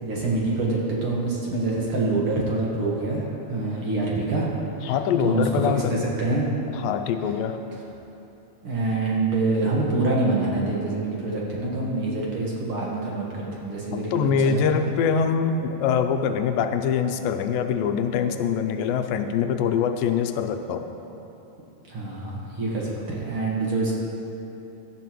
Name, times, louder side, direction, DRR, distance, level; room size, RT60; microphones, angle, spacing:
voice 1, 0.0-4.5 4.8-6.5 8.6-14.8 21.9-23.9, right 2 dB, 50° right, -4 dB, 1.8 m, -26 dB
voice 2, 4.9-6.0 6.7-7.6 13.9-20.9, left 7 dB, 80° left, 7 dB, 2.2 m, -24 dB
16.5 x 11.5 x 3.0 m, 3.0 s
omnidirectional pair, 4.0 m